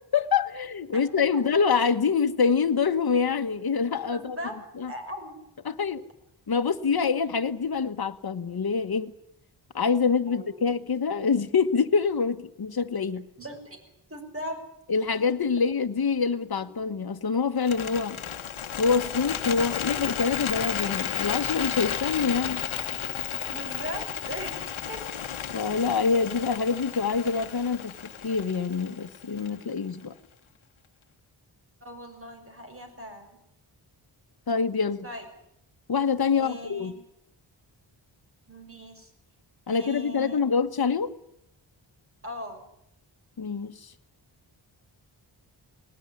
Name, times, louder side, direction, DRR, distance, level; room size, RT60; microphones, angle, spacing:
voice 1, 0.1-4.4 4.8-4.9 5.6-6.0 6.5-9.1 9.7-13.3 14.9-18.2 18.8-22.6 25.5-30.1 34.5-35.1 35.9-36.9 39.7-41.1 43.4-43.9, left 5 dB, 50° left, 10 dB, 1.4 m, -26 dB
voice 2, 4.1-4.6 4.9-5.4 10.3-10.5 13.4-13.8 14.1-14.6 23.4-25.0 31.8-33.4 35.0-35.2 36.4-36.9 38.5-39.1 39.7-40.4 42.2-42.6, equal, 30° right, 5 dB, 6.0 m, -39 dB
Bird, 17.6-29.8, left 9 dB, 90° left, 1.2 m, -33 dB
20.0 x 19.5 x 9.9 m, 0.78 s
wide cardioid pair, 90°, 47 cm